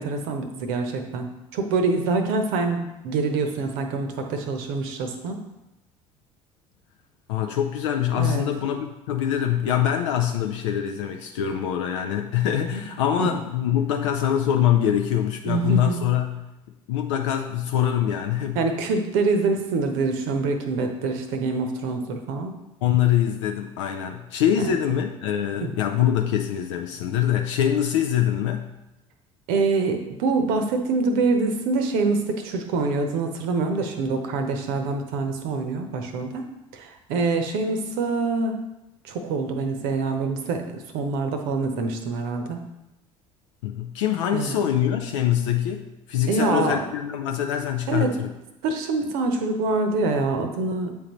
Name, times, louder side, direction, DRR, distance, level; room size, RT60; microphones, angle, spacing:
voice 1, 0.0-5.4 8.2-8.5 12.6-12.8 13.2-13.3 15.5-16.1 18.5-22.5 24.6-24.7 25.6-25.7 29.5-38.6 39.0-42.7 44.3-44.6 46.3-46.9 47.9-48.1 48.6-50.9, right 3 dB, 60° right, 5 dB, 0.8 m, -25 dB
voice 2, 7.3-16.5 16.9-18.6 22.8-28.7 43.6-48.3, left 10 dB, 65° left, 4 dB, 0.4 m, -24 dB
8.5 x 3.7 x 3.0 m, 0.96 s
figure-of-eight pair, 60°, 17 cm